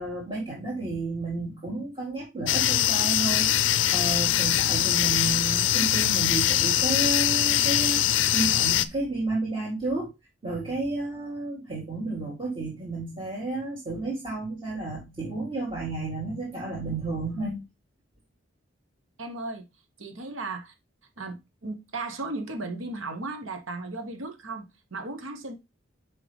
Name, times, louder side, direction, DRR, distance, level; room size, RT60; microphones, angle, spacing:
voice 1, 0.0-3.5 3.9-8.0 8.3-10.1 10.4-17.6, right 2 dB, 25° right, 1.9 m, -31 dB
sound 1, 2.5-8.9, left 12 dB, 70° left, 0.4 m, -23 dB
voice 2, 19.2-19.7 20.0-20.7 21.2-25.5, right 3 dB, 85° right, 1.2 m, -36 dB
6.2 x 4.8 x 3.4 m
head